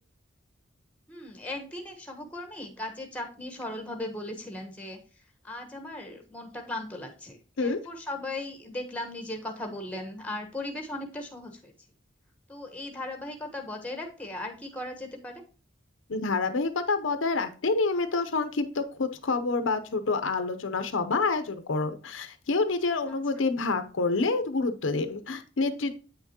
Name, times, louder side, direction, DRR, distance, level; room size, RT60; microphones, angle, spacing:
voice 1, 1.1-5.0 5.4-11.7 12.5-15.4 23.1-23.2, left 1 dB, 5° left, 3 dB, 1.1 m, -37 dB
voice 2, 16.1-25.9, left 3 dB, 75° left, 9 dB, 0.7 m, -28 dB
8.6 x 5.8 x 2.8 m, 0.37 s
head